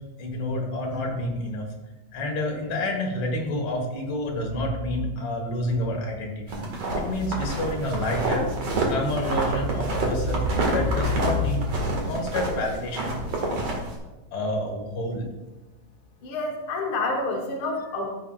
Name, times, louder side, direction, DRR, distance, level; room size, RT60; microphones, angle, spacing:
voice 1, 0.2-1.6 2.1-6.6 7.0-8.5 8.9-11.6 12.0-13.7 14.3-15.3, left 1 dB, 50° left, 0 dB, 1.9 m, -28 dB
sound 1, 6.5-14.0, right 2 dB, 50° right, 2.4 m, -28 dB
voice 2, 16.2-18.1, left 2 dB, 75° left, 0 dB, 1.2 m, -28 dB
15.0 x 6.7 x 2.4 m, 1.1 s
omnidirectional pair, 3.9 m